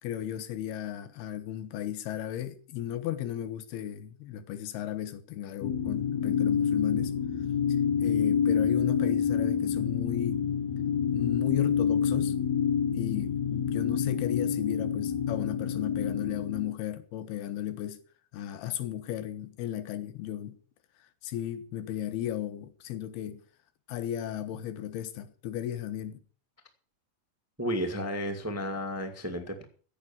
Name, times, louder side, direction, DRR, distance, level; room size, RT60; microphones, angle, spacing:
voice 1, 0.0-7.2 8.0-10.5 11.1-12.4 12.9-18.0 18.3-20.6 21.2-23.4 23.9-26.2, left 11 dB, 90° left, 3.2 m, -35 dB
sound 1, 5.6-16.7, left 7 dB, 60° left, 2.2 m, -27 dB
voice 2, 27.6-29.6, equal, 10° right, 0.9 m, -32 dB
15.5 x 8.6 x 7.2 m
omnidirectional pair, 4.4 m